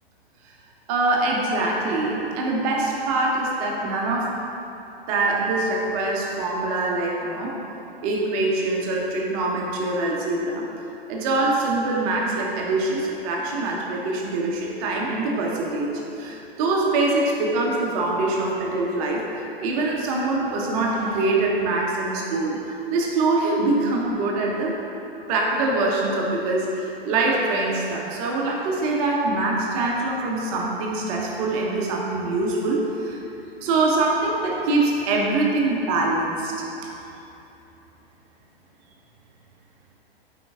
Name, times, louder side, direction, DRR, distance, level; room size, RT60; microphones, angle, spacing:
voice 1, 0.9-4.3 5.1-7.6 8.0-10.7 11.1-24.7 25.3-33.2 33.6-36.6, right 2 dB, 35° right, -2 dB, 1.1 m, -24 dB
7.9 x 4.7 x 3.6 m, 3.0 s
figure-of-eight pair, 100°, 30 cm